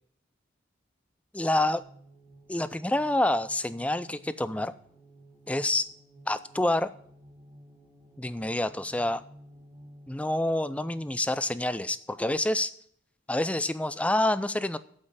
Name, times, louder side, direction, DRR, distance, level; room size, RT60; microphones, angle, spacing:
voice 1, 1.3-1.8 2.5-4.7 5.5-5.9 6.3-6.9 8.2-9.2 10.1-12.7 13.3-14.8, left 1 dB, 5° left, 14 dB, 0.4 m, -27 dB
sound 1, 1.8-11.1, equal, 20° right, 1.6 m, -54 dB
8.7 x 7.7 x 7.9 m, 0.63 s
head